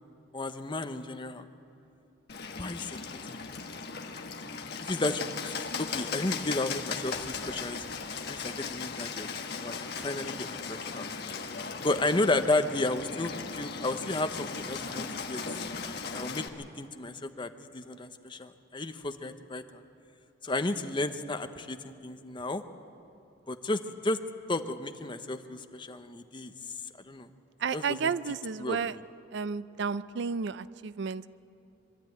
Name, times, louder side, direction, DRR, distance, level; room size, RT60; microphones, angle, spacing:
voice 1, 0.3-1.4 2.6-3.4 4.8-7.8 8.3-9.3 9.6-11.1 11.8-15.4 16.1-19.6 20.4-22.6 23.5-24.2 24.5-26.5 27.1-27.3 27.7-28.1 28.6-29.0, left 2 dB, 25° left, 8 dB, 0.8 m, -33 dB
Bird, 2.3-16.5, left 5 dB, 55° left, 1.2 m, -37 dB
voice 2, 27.6-28.9 29.3-31.3, right 5 dB, 60° right, 16 dB, 0.4 m, -32 dB
23.5 x 13.0 x 9.2 m, 2.8 s
head